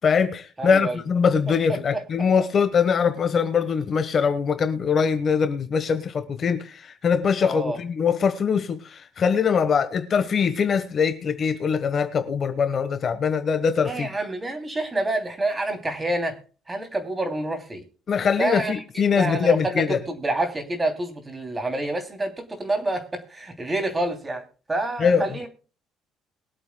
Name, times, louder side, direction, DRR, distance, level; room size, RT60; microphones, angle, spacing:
voice 1, 0.0-14.1 18.1-20.0 25.0-25.4, left 6 dB, 35° left, 1.2 m, -22 dB
voice 2, 0.6-1.0 1.5-2.0 7.4-7.8 13.8-16.3 16.7-17.8 18.4-24.4 24.7-25.5, right 2 dB, 15° right, 2.9 m, -28 dB
22.0 x 8.3 x 2.2 m
cardioid pair, 140°, 0 cm